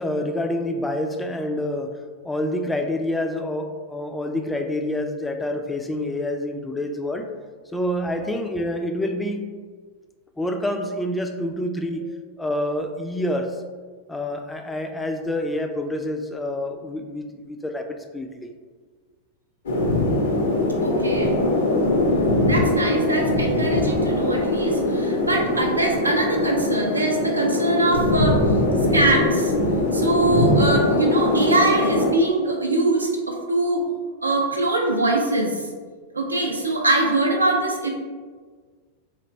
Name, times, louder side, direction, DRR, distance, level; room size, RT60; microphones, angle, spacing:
voice 1, 0.0-2.0 2.2-7.3 7.7-9.5 10.4-12.0 12.4-13.6 14.1-18.5 25.4-25.6, left 1 dB, 10° left, 5 dB, 0.3 m, -27 dB
sound 1, 19.7-32.1, left 1 dB, 65° left, 0.6 m, -21 dB
voice 2, 20.8-21.3 22.4-28.4 28.9-29.5 29.9-33.9 34.2-35.7 36.1-37.9, right 2 dB, 80° right, 0 dB, 0.5 m, -22 dB
2.9 x 2.5 x 3.3 m, 1.5 s
figure-of-eight pair, 90°, 0 cm